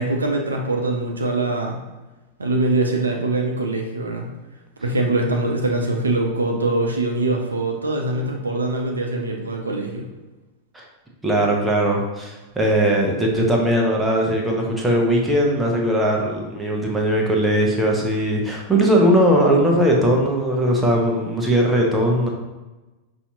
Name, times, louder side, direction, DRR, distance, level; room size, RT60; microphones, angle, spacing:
voice 1, 0.0-1.9 2.4-4.4 4.8-10.1, right 2 dB, 75° right, 2 dB, 0.5 m, -23 dB
voice 2, 11.2-22.3, right 1 dB, 10° right, -1 dB, 0.8 m, -19 dB
5.5 x 2.8 x 2.7 m, 1.1 s
figure-of-eight pair, 90°, 0 cm